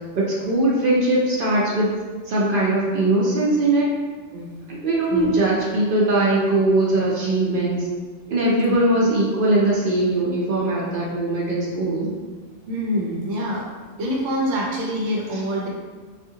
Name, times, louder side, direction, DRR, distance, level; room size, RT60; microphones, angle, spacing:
voice 1, 0.2-1.9 2.3-3.9 4.7-7.8 8.3-12.1 15.3-15.4, right 2 dB, 60° right, -5 dB, 0.6 m, -20 dB
voice 2, 4.3-4.6 5.1-5.3 8.7-8.8 12.7-13.6 14.0-15.7, equal, 80° right, -2 dB, 0.9 m, -25 dB
3.6 x 2.4 x 2.7 m, 1.4 s
omnidirectional pair, 1.3 m